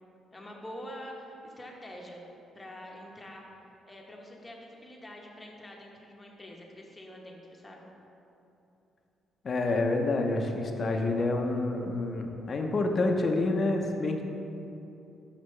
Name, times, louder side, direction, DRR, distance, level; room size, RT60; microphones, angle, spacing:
voice 1, 0.3-2.3 2.5-3.4 3.9-7.8, equal, 15° left, -1 dB, 1.0 m, -45 dB
voice 2, 9.4-14.2, left 2 dB, 45° left, 3 dB, 0.6 m, -28 dB
6.1 x 5.9 x 3.2 m, 2.9 s
cardioid pair, 90°, 0 cm